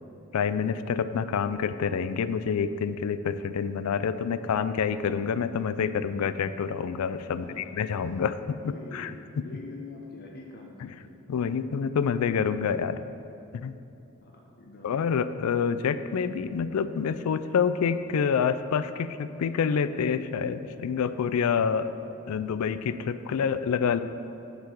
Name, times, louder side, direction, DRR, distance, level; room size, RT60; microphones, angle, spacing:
voice 1, 0.3-9.1 11.3-13.0 13.5-13.7 14.8-21.9 22.3-24.0, left 6 dB, 75° left, 13 dB, 0.3 m, -27 dB
voice 2, 7.3-8.2 8.6-11.5 14.2-15.1, left 2 dB, 45° left, 0 dB, 0.7 m, -46 dB
5.8 x 5.6 x 6.8 m, 2.8 s
head